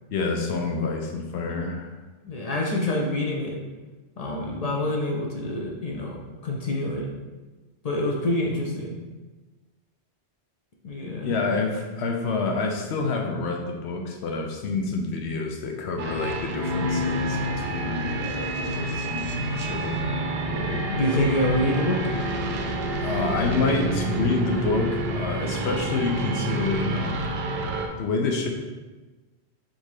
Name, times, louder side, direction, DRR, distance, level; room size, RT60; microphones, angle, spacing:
voice 1, 0.1-1.9 11.2-20.0 23.0-27.3 28.0-28.5, left 3 dB, 75° left, 2 dB, 0.9 m, -28 dB
voice 2, 2.2-3.6 4.2-7.1 7.8-9.0 10.8-11.3 20.5-22.0, left 1 dB, 45° left, -2 dB, 0.6 m, -27 dB
sound 1, 16.0-27.9, right 1 dB, 70° right, 0.8 m, -28 dB
3.7 x 2.7 x 4.7 m, 1.2 s
omnidirectional pair, 1.1 m